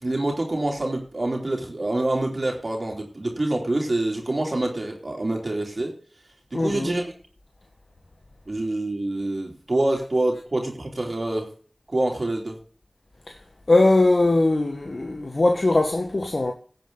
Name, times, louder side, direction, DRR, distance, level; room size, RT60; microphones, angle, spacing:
voice 1, 0.0-5.9 6.5-7.1 8.5-11.5 11.9-12.6, right 2 dB, 50° right, 3.1 m, -26 dB
voice 2, 6.5-6.9 13.7-16.5, left 2 dB, 60° left, 1.4 m, -20 dB
16.5 x 8.2 x 4.0 m
wide cardioid pair, 55°, 0 cm